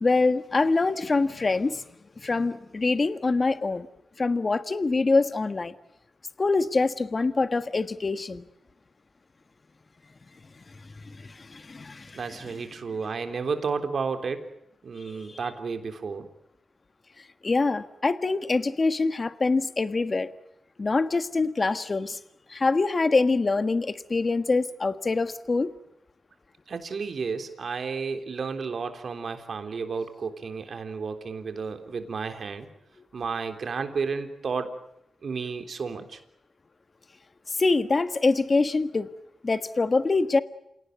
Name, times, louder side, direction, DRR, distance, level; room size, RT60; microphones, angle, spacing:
voice 1, 0.0-1.8 2.2-3.9 4.2-5.7 6.4-8.4 11.1-12.6 15.1-15.4 17.4-20.3 20.8-22.2 22.5-25.7 37.5-39.1 39.4-40.4, left 3 dB, 40° left, 12 dB, 1.5 m, -25 dB
voice 2, 12.1-14.4 14.8-16.3 26.7-32.7 33.1-34.7 35.2-36.2, right 5 dB, 65° right, 7 dB, 3.5 m, -32 dB
28.0 x 18.0 x 9.4 m, 0.82 s
cardioid pair, 65°, 0 cm